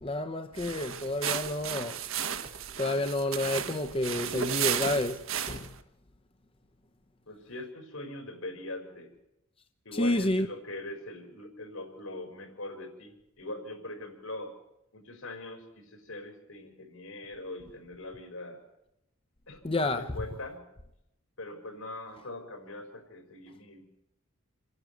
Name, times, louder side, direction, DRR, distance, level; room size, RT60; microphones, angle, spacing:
voice 1, 0.0-1.9 2.8-5.7 9.9-10.5 19.6-20.1, left 1 dB, 25° left, 0.7 m, -30 dB
sound 1, 0.5-5.8, right 8 dB, 75° right, 1.3 m, -34 dB
voice 2, 7.3-9.1 9.8-14.5 14.9-18.6 19.5-20.6 21.4-23.8, left 2 dB, 80° left, 4.9 m, -42 dB
27.5 x 11.0 x 9.2 m
head